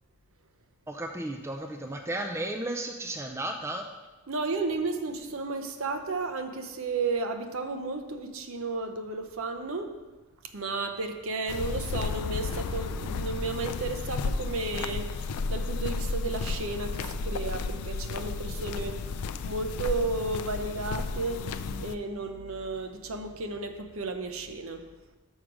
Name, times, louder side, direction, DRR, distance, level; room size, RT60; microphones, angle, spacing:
voice 1, 0.9-3.8, right 1 dB, 10° right, 4 dB, 0.4 m, -34 dB
voice 2, 4.3-9.9 10.5-19.2 19.4-21.5 21.8-24.8, right 3 dB, 65° right, 6 dB, 0.7 m, -33 dB
sound 1, 11.5-22.0, left 4 dB, 85° left, 0.4 m, -33 dB
6.4 x 4.9 x 6.0 m, 1.2 s
head